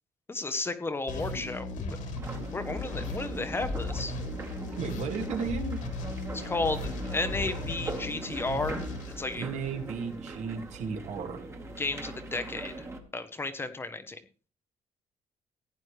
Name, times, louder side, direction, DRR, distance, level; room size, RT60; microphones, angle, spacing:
voice 1, 0.3-2.0 2.5-4.1 6.3-8.8 9.2-9.5 11.8-12.9 13.1-14.2, left 3 dB, 20° left, 10 dB, 0.8 m, -33 dB
sound 1, 1.1-9.9, left 2 dB, 80° left, 3.0 m, -37 dB
sound 2, 2.1-13.0, right 2 dB, 20° right, 1.5 m, -40 dB
voice 2, 4.8-5.8 9.4-11.4, right 5 dB, 65° right, 5 dB, 2.0 m, -34 dB
15.5 x 9.4 x 3.2 m, 0.35 s
cardioid pair, 160°, 13 cm